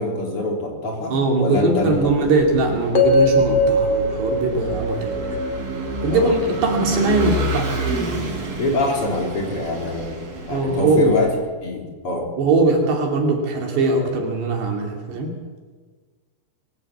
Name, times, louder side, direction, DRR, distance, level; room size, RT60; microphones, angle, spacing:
voice 1, 0.0-2.1 6.1-6.4 8.6-11.3 11.6-12.4, left 1 dB, 35° left, 1 dB, 3.9 m, -25 dB
voice 2, 1.1-5.4 6.0-7.8 10.5-11.1 12.4-15.4, right 2 dB, 70° right, 1 dB, 4.6 m, -21 dB
Vehicle / Engine, 1.6-11.4, right 2 dB, 55° right, 6.2 m, -29 dB
sound 1, 3.0-7.1, left 1 dB, 50° left, 2.7 m, -21 dB
22.5 x 16.0 x 8.4 m, 1.4 s
omnidirectional pair, 5.1 m